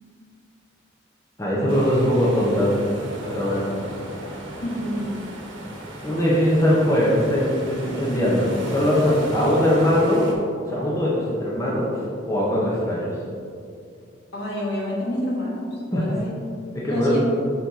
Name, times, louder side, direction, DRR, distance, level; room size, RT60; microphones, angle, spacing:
voice 1, 1.4-2.7 3.3-3.6 6.0-10.3 10.6-11.9 12.3-13.2 15.9-16.0 16.7-17.2, equal, 15° left, -6 dB, 0.9 m, -21 dB
sound 1, 1.7-10.3, right 1 dB, 70° right, 1.2 m, -35 dB
voice 2, 4.6-5.1 14.3-16.4 16.8-17.2, left 1 dB, 60° left, -5 dB, 1.5 m, -28 dB
6.2 x 4.3 x 4.1 m, 2.4 s
head